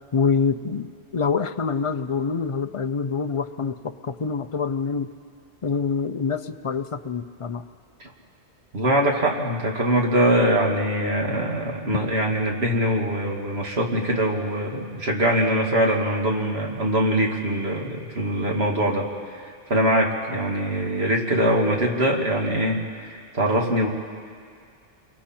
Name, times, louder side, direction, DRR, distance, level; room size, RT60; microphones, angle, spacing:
voice 1, 0.1-5.1 5.6-7.6, left 5 dB, 40° left, 9 dB, 0.5 m, -26 dB
voice 2, 8.7-23.9, right 1 dB, 60° right, 0 dB, 2.3 m, -23 dB
28.5 x 23.0 x 4.4 m, 2.2 s
omnidirectional pair, 1.2 m